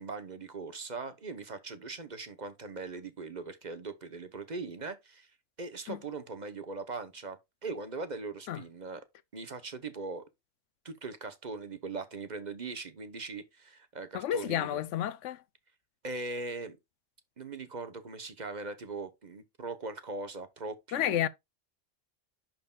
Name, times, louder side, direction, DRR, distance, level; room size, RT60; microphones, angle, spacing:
voice 1, 0.0-5.3 5.6-9.0 9.3-10.2 10.8-14.8 16.0-16.8 17.4-21.2, right 3 dB, 40° right, 0.9 m, -40 dB
voice 2, 14.1-15.4 20.9-21.3, left 11 dB, 75° left, 0.9 m, -30 dB
11.0 x 4.4 x 2.3 m
omnidirectional pair, 1.3 m